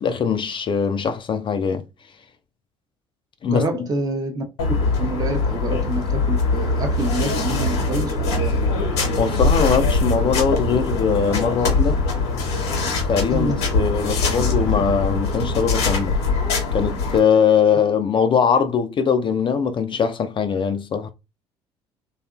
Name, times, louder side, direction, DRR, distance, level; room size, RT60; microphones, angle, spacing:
voice 1, 0.0-1.8 3.4-3.6 9.2-12.0 13.1-16.2 16.7-21.1, left 6 dB, 40° left, 0.4 m, -21 dB
voice 2, 3.5-4.4 5.0-8.6 13.3-13.6, right 2 dB, 30° right, 0.7 m, -27 dB
sound 1, 4.6-17.2, left 3 dB, 80° left, 0.9 m, -22 dB
2.7 x 2.4 x 2.4 m
hypercardioid pair, 55°, 14 cm